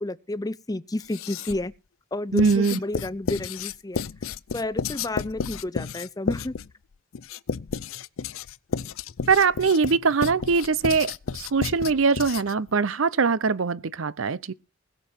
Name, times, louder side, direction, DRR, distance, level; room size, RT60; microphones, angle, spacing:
voice 1, 0.0-1.7 2.1-4.0 4.5-6.5, left 2 dB, 20° left, 0.5 m, -31 dB
Writing, 1.0-1.7 2.4-12.7, left 6 dB, 85° left, 0.5 m, -32 dB
voice 2, 2.3-2.8 9.3-14.5, right 5 dB, 80° right, 0.7 m, -22 dB
21.0 x 7.0 x 4.4 m
head